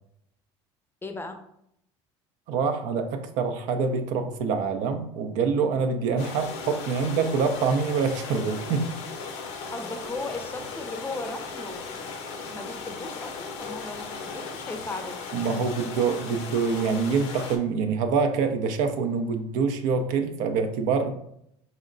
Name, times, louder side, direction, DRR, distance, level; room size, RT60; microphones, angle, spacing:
voice 1, 1.0-1.4 9.3-11.9 12.4-15.2, left 2 dB, 15° left, 6 dB, 0.6 m, -37 dB
voice 2, 2.5-8.9 15.3-21.1, right 5 dB, 65° right, 6 dB, 0.5 m, -25 dB
sound 1, 6.2-17.6, left 4 dB, 75° left, 0.6 m, -37 dB
3.9 x 2.1 x 3.8 m, 0.74 s
hypercardioid pair, 75°, 14 cm